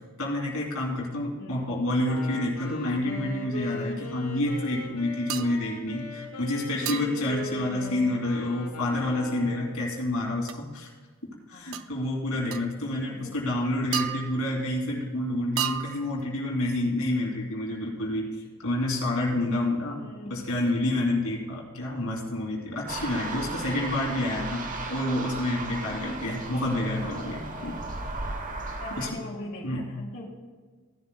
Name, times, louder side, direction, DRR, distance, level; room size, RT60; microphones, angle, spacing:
voice 1, 0.2-10.9 11.5-20.0 20.3-27.8 29.0-29.2 29.6-29.9, left 1 dB, 70° left, -2 dB, 2.8 m, -28 dB
voice 2, 1.4-1.7 11.5-11.8 13.1-13.4 19.9-20.5 26.9-27.3 27.6-27.8 28.8-30.3, left 1 dB, 50° left, -5 dB, 2.5 m, -41 dB
Wind instrument woodwind instrument, 1.9-9.8, left 2 dB, 90° left, 1.7 m, -39 dB
sound 1, 5.3-5.6 6.9-7.3 10.5-10.6 11.7-11.9 12.5-12.7 13.9-14.6 15.6-16.2, right 10 dB, 70° right, 0.6 m, -32 dB
sound 2, 22.9-29.1, right 3 dB, 35° right, 1.0 m, -35 dB
16.0 x 11.5 x 2.3 m, 1.5 s
head